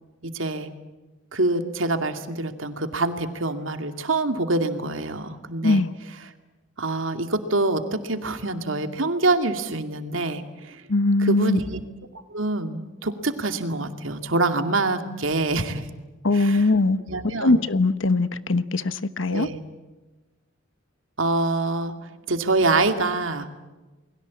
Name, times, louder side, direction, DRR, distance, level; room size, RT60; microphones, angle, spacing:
voice 1, 0.2-0.7 1.3-5.8 6.8-10.8 11.2-11.8 12.3-15.9 16.3-16.7 17.1-17.5 19.3-19.6 21.2-21.9 22.3-23.5, right 2 dB, 80° right, 2.4 m, -25 dB
voice 2, 10.9-11.6 16.2-17.0 17.4-19.5, left 2 dB, 70° left, 1.1 m, -21 dB
29.0 x 22.0 x 8.5 m
head